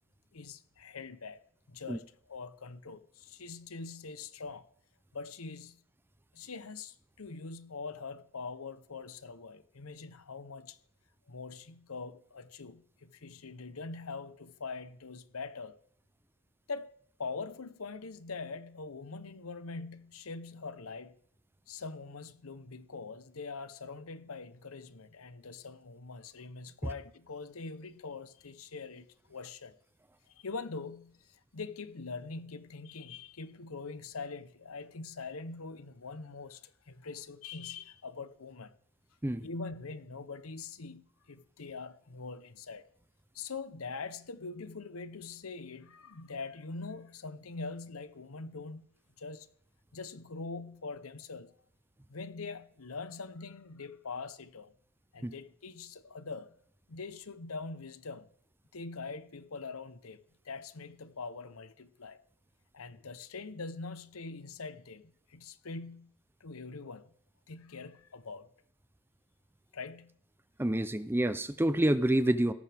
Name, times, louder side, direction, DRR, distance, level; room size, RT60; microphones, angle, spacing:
voice 1, 0.3-1.4 1.7-4.7 5.1-5.8 6.3-10.8 11.3-15.8 16.7-16.9 17.2-21.2 21.7-29.7 30.3-38.7 39.4-42.8 43.3-48.9 49.2-49.5 49.9-51.5 52.1-54.7 55.1-56.5 56.9-58.3 58.7-62.2 62.7-66.1 66.4-67.1 67.5-68.5 69.7-70.2, left 4 dB, 85° left, 0.9 m, -43 dB
voice 2, 70.6-72.5, right 1 dB, 10° right, 0.5 m, -28 dB
17.5 x 14.0 x 3.5 m
head